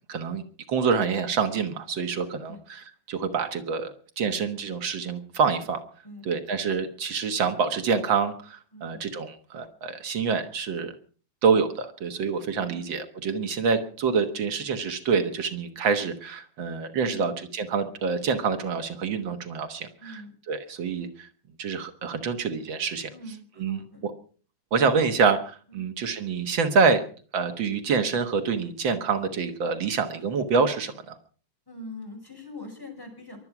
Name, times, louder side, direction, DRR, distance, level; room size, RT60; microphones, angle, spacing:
voice 1, 0.1-0.4 0.7-3.9 4.2-5.8 6.2-10.9 11.4-20.2 20.5-21.3 21.6-23.1 23.6-24.1 24.7-27.0 27.3-31.2, right 5 dB, 80° right, 8 dB, 2.2 m, -26 dB
voice 2, 8.7-9.1 12.6-13.0 17.0-17.3 20.0-20.3 23.1-24.0 25.7-25.9 31.7-33.4, left 1 dB, 10° left, 1 dB, 5.7 m, -43 dB
23.5 x 8.7 x 6.0 m, 0.43 s
omnidirectional pair, 2.1 m